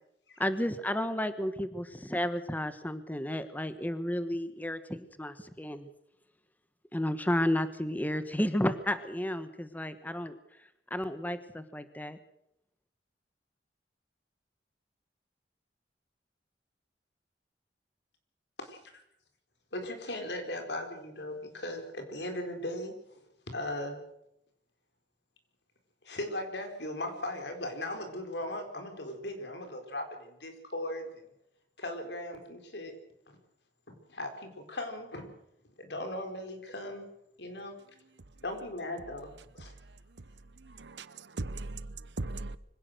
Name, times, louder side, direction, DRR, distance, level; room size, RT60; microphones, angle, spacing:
voice 1, 0.4-5.9 6.9-10.3 10.9-12.2, left 1 dB, 10° left, 1.1 m, -32 dB
voice 2, 19.7-23.2 23.5-24.0 26.0-31.3 31.8-32.9 33.3-33.4 33.9-35.3 35.8-37.1 37.4-37.8 38.4-39.7, left 1 dB, 75° left, 4.3 m, -38 dB
voice 3, 39.9-40.2 40.6-42.6, right 2 dB, 85° right, 1.0 m, -39 dB
24.5 x 17.0 x 6.6 m
head